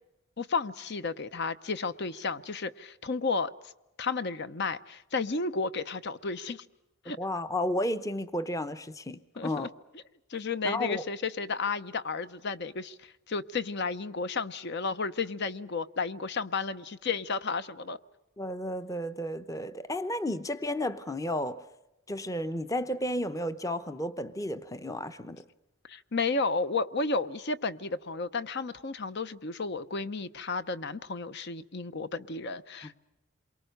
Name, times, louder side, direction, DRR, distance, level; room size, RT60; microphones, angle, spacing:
voice 1, 0.4-3.7 4.0-6.6 7.0-7.2 9.4-9.7 10.3-18.0 25.9-33.0, left 4 dB, 50° left, 0.8 m, -32 dB
voice 2, 7.2-9.7 10.6-11.0 18.4-21.7 22.1-25.4, left 1 dB, 15° left, 0.8 m, -32 dB
28.0 x 23.5 x 6.6 m
head